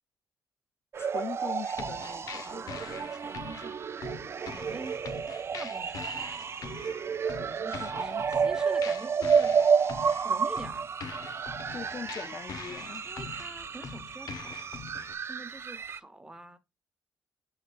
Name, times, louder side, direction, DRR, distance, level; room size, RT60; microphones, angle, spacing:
sound 1, 0.9-16.0, right 6 dB, 40° right, 0.4 m, -31 dB
voice 1, 1.0-2.7 7.7-8.3 11.7-13.1, left 6 dB, 35° left, 0.5 m, -41 dB
sound 2, 1.7-15.1, left 6 dB, 65° left, 0.9 m, -44 dB
voice 2, 2.4-3.8 4.5-5.0 5.5-6.6 7.4-9.5 10.2-10.9 11.6-11.8 13.0-14.6 15.2-16.6, right 2 dB, 10° right, 1.1 m, -46 dB
10.5 x 3.8 x 2.4 m
cardioid pair, 100°, 7 cm